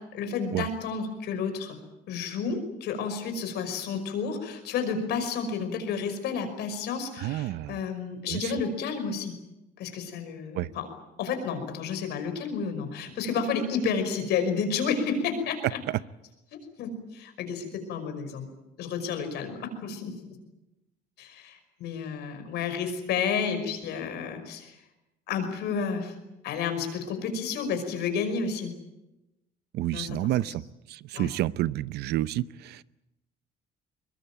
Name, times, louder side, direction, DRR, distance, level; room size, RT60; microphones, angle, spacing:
voice 1, 0.0-1.8 2.1-9.3 9.8-10.9 11.2-15.8 16.5-18.5 18.8-20.2 21.2-24.8 25.3-26.2 26.4-28.7 29.9-30.5 31.1-31.3, left 5 dB, 75° left, 8 dB, 5.6 m, -31 dB
voice 2, 7.2-7.8 8.3-8.5 10.5-10.7 29.7-30.6 30.9-32.8, right 14 dB, 75° right, 17 dB, 0.8 m, -29 dB
23.0 x 22.0 x 9.1 m, 0.96 s
cardioid pair, 110°, 17 cm